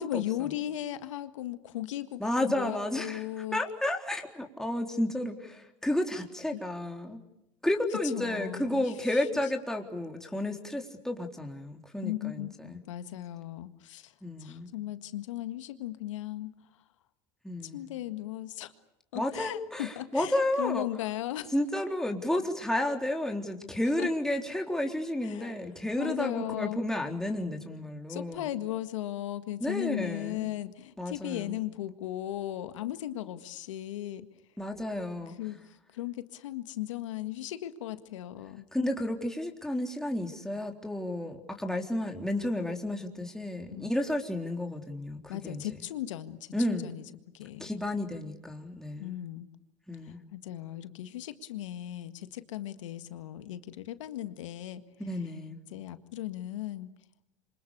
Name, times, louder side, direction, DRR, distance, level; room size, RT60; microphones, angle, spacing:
voice 1, 0.0-3.6 6.5-6.6 8.1-9.4 12.0-14.1 14.4-16.5 17.6-18.7 19.1-21.5 24.0-24.1 25.2-25.6 26.0-26.8 28.1-34.3 35.3-38.7 43.7-43.9 45.3-47.0 47.3-47.7 49.0-49.5 50.0-54.8 55.7-56.9, left 13 dB, 80° left, 10 dB, 1.8 m, -37 dB
voice 2, 2.2-3.2 3.5-7.2 7.6-12.8 14.2-14.7 17.4-17.9 19.1-20.9 21.5-28.5 29.6-30.5 31.0-31.6 34.6-35.4 38.7-45.6 46.5-46.9 47.6-49.1 49.9-50.2 55.0-55.6, left 1 dB, 5° left, 2 dB, 3.8 m, -32 dB
27.5 x 26.0 x 6.9 m, 0.89 s
hypercardioid pair, 85°, 16 cm